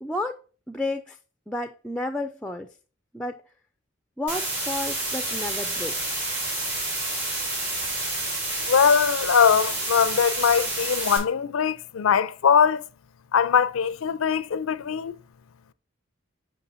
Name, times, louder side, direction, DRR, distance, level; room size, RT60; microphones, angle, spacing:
voice 1, 0.0-0.4 0.7-1.2 1.5-2.7 3.1-3.4 4.2-6.0, left 2 dB, 5° left, 0.3 m, -31 dB
sound 1, 4.3-11.2, right 2 dB, 60° right, 3.6 m, -29 dB
voice 2, 8.7-12.8 13.3-15.1, left 7 dB, 75° left, 0.4 m, -21 dB
6.8 x 5.7 x 2.6 m
head